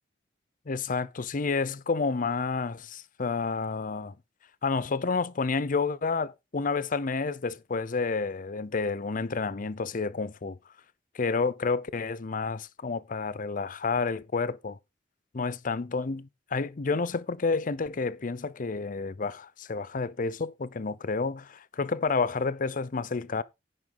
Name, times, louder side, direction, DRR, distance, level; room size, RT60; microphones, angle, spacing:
voice 1, 0.7-4.1 4.6-10.6 11.1-14.8 15.3-23.4, left 4 dB, 45° left, 0.6 m, -30 dB
10.5 x 7.5 x 3.9 m
head